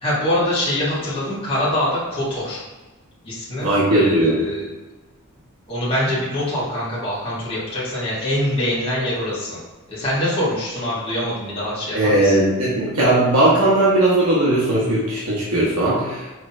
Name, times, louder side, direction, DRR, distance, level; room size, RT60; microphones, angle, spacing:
voice 1, 0.0-2.6 3.2-4.6 5.7-9.6 9.9-12.3, left 1 dB, 25° left, -9 dB, 1.4 m, -24 dB
voice 2, 3.6-4.4 11.9-16.3, right 1 dB, 85° right, -8 dB, 1.2 m, -18 dB
5.7 x 3.2 x 2.6 m, 1.2 s
head